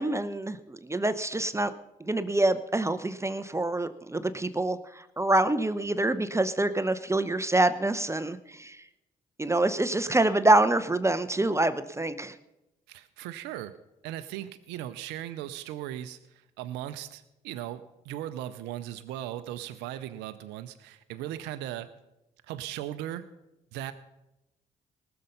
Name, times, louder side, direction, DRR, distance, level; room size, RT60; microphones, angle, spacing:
voice 1, 0.0-1.7 2.0-8.8 9.4-12.3, right 2 dB, 15° right, 11 dB, 0.7 m, -26 dB
voice 2, 12.9-13.8 14.0-21.9 22.5-23.2 23.7-23.9, right 12 dB, 80° right, 11 dB, 0.5 m, -38 dB
19.0 x 6.8 x 5.4 m, 0.94 s
hypercardioid pair, 45°, 18 cm